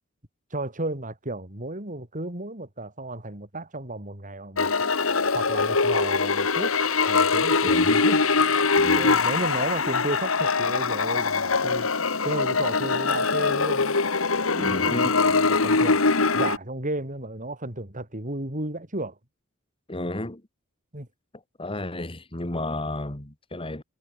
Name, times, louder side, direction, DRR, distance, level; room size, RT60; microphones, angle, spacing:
voice 1, 0.5-4.7 5.3-6.7 7.1-8.2 8.9-11.9 12.2-14.0 14.4-16.0 16.3-19.2 20.9-21.1, right 2 dB, 40° right, 5.0 m, -33 dB
sound 1, 4.6-16.6, left 4 dB, 75° left, 1.8 m, -22 dB
voice 2, 7.6-8.0 8.8-9.1 14.6-15.2 19.9-20.4 21.6-23.8, left 1 dB, 25° left, 2.3 m, -32 dB
head